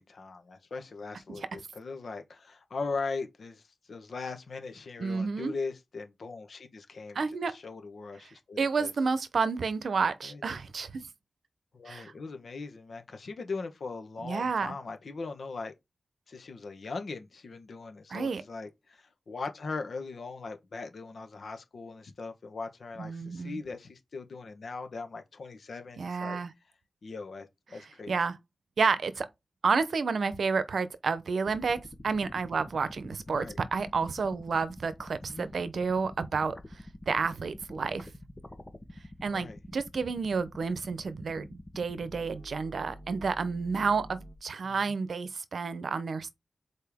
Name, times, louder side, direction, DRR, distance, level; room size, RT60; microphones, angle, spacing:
voice 1, 0.0-8.9 10.2-10.4 11.7-15.7 16.3-26.4 27.0-28.2 33.3-33.6 35.2-35.5 39.3-39.6 40.6-40.7 44.6-44.9, left 4 dB, 80° left, 1.2 m, -40 dB
voice 2, 5.0-5.5 7.1-7.5 8.6-11.1 11.9-12.1 14.2-14.7 18.1-18.4 23.0-23.6 26.0-26.5 28.1-28.3 28.8-29.3 29.6-31.8 32.0-33.5 33.7-36.6 37.1-38.1 39.2-46.3, right 5 dB, 85° right, 0.7 m, -30 dB
sound 1, 31.5-44.4, left 1 dB, 20° left, 1.0 m, -47 dB
6.7 x 4.4 x 3.6 m
wide cardioid pair, 75°, 0 cm